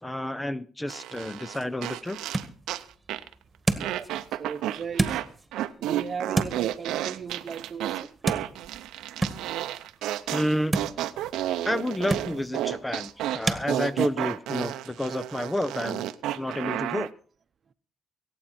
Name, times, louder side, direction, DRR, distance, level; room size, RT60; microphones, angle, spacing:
voice 1, 0.0-2.2 10.3-10.9 11.6-16.1 16.3-17.1, left 1 dB, 10° left, 0.7 m, -30 dB
sound 1, 0.9-2.8 3.1-3.3 3.8-5.3 5.5-17.1, right 13 dB, 90° right, 0.7 m, -31 dB
sound 2, 1.3-13.7, right 2 dB, 20° right, 1.9 m, -34 dB
voice 2, 3.8-5.2 5.8-8.2, right 6 dB, 45° right, 0.9 m, -37 dB
24.0 x 8.9 x 4.4 m
cardioid pair, 90°, 0 cm